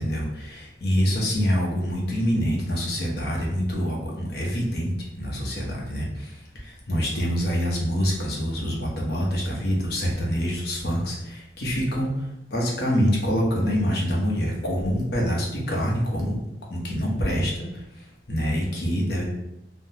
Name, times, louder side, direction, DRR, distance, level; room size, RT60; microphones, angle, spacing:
voice 1, 0.0-16.4 16.7-19.2, equal, 65° left, -2 dB, 0.8 m, -26 dB
3.5 x 2.1 x 2.8 m, 0.86 s
head